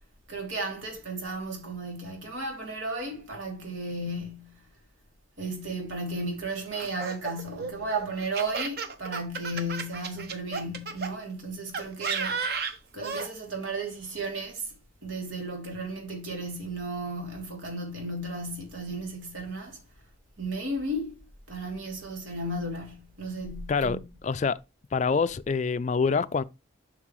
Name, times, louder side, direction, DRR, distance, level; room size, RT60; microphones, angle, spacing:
voice 1, 0.3-4.6 5.4-12.4 12.9-14.7 15.0-19.8 20.4-24.1, right 2 dB, 90° right, 3.0 m, -34 dB
Laughter, 6.7-11.1 11.7-13.3, right 4 dB, 55° right, 0.9 m, -33 dB
voice 2, 24.2-24.6 24.9-26.4, left 5 dB, 35° left, 0.3 m, -25 dB
7.5 x 6.3 x 3.1 m
head